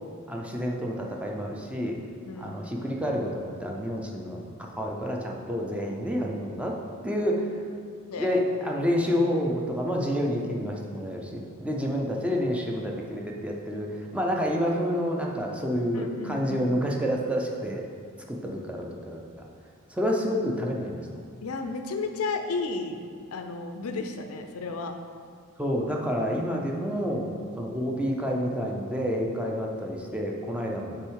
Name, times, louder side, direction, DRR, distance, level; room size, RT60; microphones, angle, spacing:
voice 1, 0.3-2.0 2.4-6.8 7.0-7.4 8.2-17.8 18.3-19.5 19.9-21.0 25.6-31.0, equal, 5° right, -1 dB, 0.6 m, -29 dB
voice 2, 2.3-2.6 8.1-8.4 15.9-16.7 21.4-24.9 30.5-30.7, left 3 dB, 85° left, 6 dB, 0.5 m, -33 dB
6.6 x 3.6 x 4.7 m, 2.1 s
head